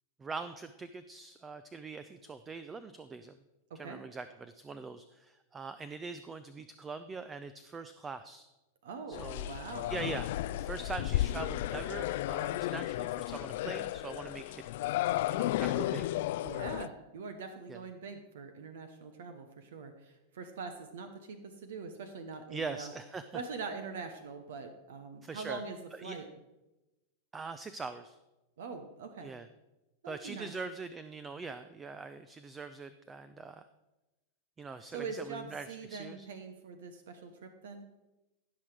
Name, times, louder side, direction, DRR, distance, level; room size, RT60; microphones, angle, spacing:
voice 1, 0.2-3.4 3.7-8.5 9.1-9.5 9.9-10.3 10.6-14.7 15.3-16.1 17.7-17.8 22.5-23.2 25.2-25.6 25.9-26.2 27.3-28.2 29.2-29.5 30.1-33.6 34.6-36.3, right 4 dB, 20° right, 12 dB, 0.5 m, -42 dB
voice 2, 3.7-4.0 8.8-9.9 16.4-22.9 23.3-26.3 28.6-29.3 30.0-30.5 34.9-37.8, right 4 dB, 65° right, 8 dB, 1.0 m, -43 dB
sound 1, 9.1-16.9, left 15 dB, 55° left, 0.3 m, -33 dB
16.0 x 6.1 x 4.9 m, 1.0 s
figure-of-eight pair, 90°, 0 cm